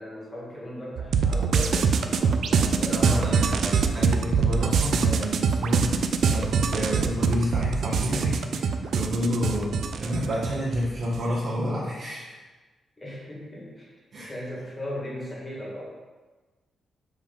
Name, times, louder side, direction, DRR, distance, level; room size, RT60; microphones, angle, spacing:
voice 1, 0.0-3.9 9.4-9.7 13.0-13.9 14.2-15.8, equal, 20° left, -6 dB, 2.2 m, -37 dB
sound 1, 1.0-11.2, right 5 dB, 65° right, 0.5 m, -24 dB
voice 2, 2.9-3.4 3.9-12.4 14.1-14.3, equal, 45° right, -6 dB, 1.1 m, -29 dB
7.5 x 3.4 x 5.4 m, 1.3 s
wide cardioid pair, 150°, 0 cm